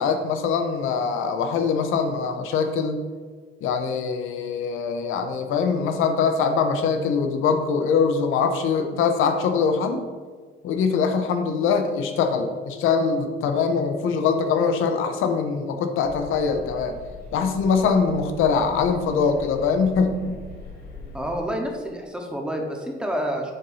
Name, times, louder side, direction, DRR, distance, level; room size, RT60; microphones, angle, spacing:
voice 1, 0.0-3.0 3.6-10.0 10.6-17.0 17.3-20.4, left 5 dB, 75° left, 6 dB, 0.8 m, -23 dB
sound 1, 16.0-21.4, left 2 dB, 50° left, 1.6 m, -41 dB
voice 2, 21.1-23.5, equal, 5° right, 1 dB, 0.9 m, -28 dB
7.0 x 2.7 x 5.5 m, 1.5 s
cardioid pair, 130°, 21 cm